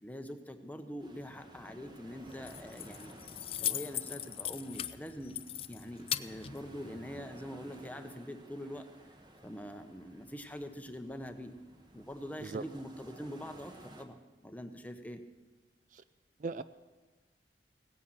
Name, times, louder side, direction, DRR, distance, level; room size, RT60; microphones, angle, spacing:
voice 1, 0.0-3.1 3.6-5.4 5.7-8.9 9.4-11.5 11.9-15.2, equal, 10° left, 7 dB, 0.9 m, -44 dB
sound 1, 1.0-14.0, right 1 dB, 25° right, 1.2 m, -55 dB
Keys jangling, 2.2-7.3, left 11 dB, 30° left, 0.4 m, -39 dB
voice 2, 12.4-12.6 15.9-16.0 16.4-16.6, right 4 dB, 45° right, 13 dB, 0.4 m, -38 dB
17.0 x 10.0 x 7.8 m, 1.2 s
head